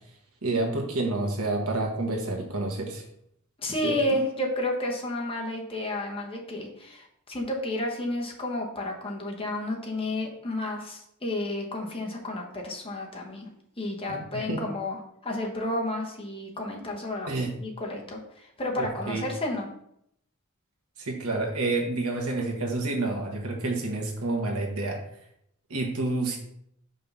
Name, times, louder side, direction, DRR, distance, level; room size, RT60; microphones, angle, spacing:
voice 1, 0.4-3.0 3.8-4.0 14.1-14.7 17.3-17.5 18.8-19.2 21.0-25.0 25.7-26.4, right 2 dB, 90° right, 1 dB, 1.3 m, -29 dB
voice 2, 3.6-13.5 13.8-17.3 17.6-19.7, left 1 dB, 25° left, -1 dB, 1.3 m, -31 dB
5.4 x 3.7 x 5.5 m, 0.73 s
head